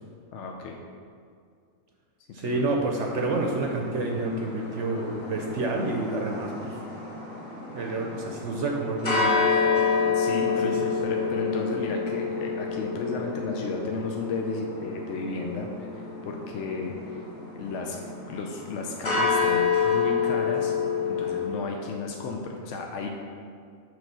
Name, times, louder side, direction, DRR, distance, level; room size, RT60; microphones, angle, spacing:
voice 1, 0.3-0.8 2.4-2.7 10.1-17.3 17.5-18.0 18.3-20.8 21.1-23.1, left 3 dB, 65° left, 1 dB, 0.9 m, -33 dB
voice 2, 2.3-6.8 7.7-9.5 10.4-11.4, right 2 dB, 60° right, 1 dB, 1.0 m, -29 dB
sound 1, 2.8-21.5, left 5 dB, 40° left, 2.2 m, -29 dB
6.7 x 4.3 x 6.0 m, 2.3 s
omnidirectional pair, 1.5 m